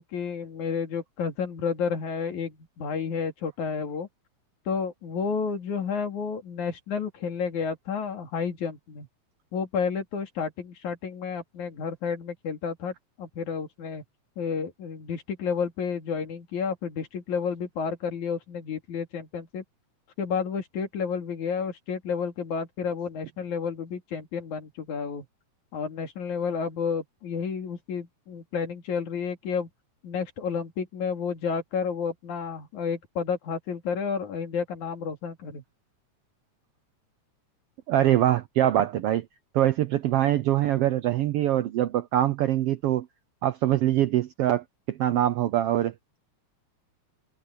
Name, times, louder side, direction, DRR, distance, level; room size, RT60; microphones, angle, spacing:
voice 1, 0.0-4.1 4.7-9.1 9.5-14.0 14.4-19.6 20.2-25.3 25.7-29.7 30.0-35.6, left 6 dB, 80° left, 3.9 m, -31 dB
voice 2, 37.9-39.2 39.5-43.1 43.4-45.9, right 12 dB, 75° right, 1.3 m, -23 dB
omnidirectional pair, 3.4 m